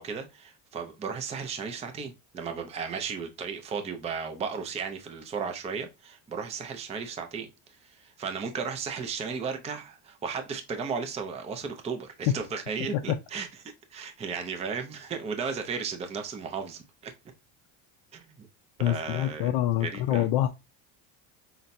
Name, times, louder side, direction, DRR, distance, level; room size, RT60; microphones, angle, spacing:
voice 1, 0.0-17.1 18.1-18.3 18.9-19.5 19.8-20.3, right 5 dB, 15° right, 0.4 m, -35 dB
voice 2, 18.8-20.5, left 13 dB, 65° left, 0.6 m, -26 dB
5.7 x 2.1 x 2.6 m
cardioid pair, 150°, 46 cm